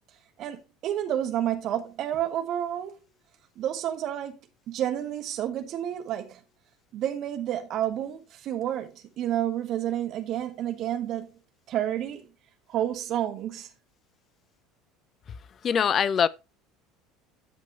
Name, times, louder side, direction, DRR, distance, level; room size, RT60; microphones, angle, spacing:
voice 1, 0.4-2.9 3.6-4.4 4.7-6.4 6.9-11.3 11.7-12.3 12.7-13.7, right 11 dB, 45° right, 1.4 m, -30 dB
voice 2, 15.6-16.3, left 7 dB, 35° left, 0.5 m, -22 dB
13.0 x 5.2 x 3.1 m
figure-of-eight pair, 65°, 0 cm